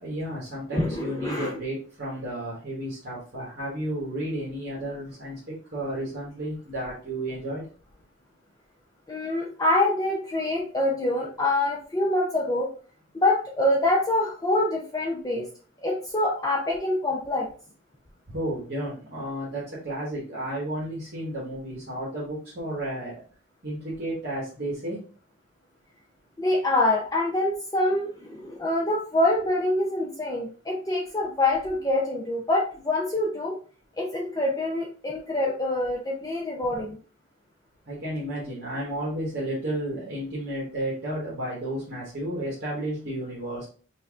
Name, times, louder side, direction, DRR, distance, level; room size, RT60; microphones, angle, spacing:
voice 1, 0.0-7.6 18.3-23.2 23.6-25.0 37.9-43.7, right 1 dB, 50° right, -6 dB, 1.2 m, -32 dB
voice 2, 0.7-1.6 9.1-12.7 13.1-15.5 15.8-17.5 26.4-33.6 34.0-37.0, left 1 dB, 15° left, -2 dB, 0.5 m, -25 dB
5.5 x 2.6 x 2.4 m, 0.40 s
head